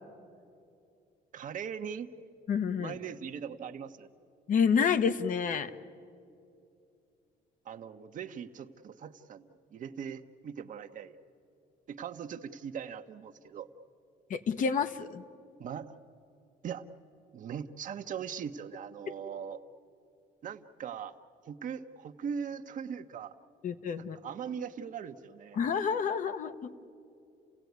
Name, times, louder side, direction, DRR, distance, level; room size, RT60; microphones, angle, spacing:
voice 1, 1.3-2.1 2.8-4.1 7.6-11.2 11.9-13.7 15.6-16.0 16.6-16.9 17.3-19.6 20.4-21.1 21.5-23.4 24.0-25.6, right 7 dB, 50° right, 8 dB, 1.0 m, -40 dB
voice 2, 2.5-3.0 4.5-5.7 14.3-15.2 23.6-24.2 25.5-26.7, left 6 dB, 50° left, 10 dB, 1.1 m, -29 dB
29.5 x 16.0 x 9.5 m, 2.6 s
cardioid pair, 110°, 17 cm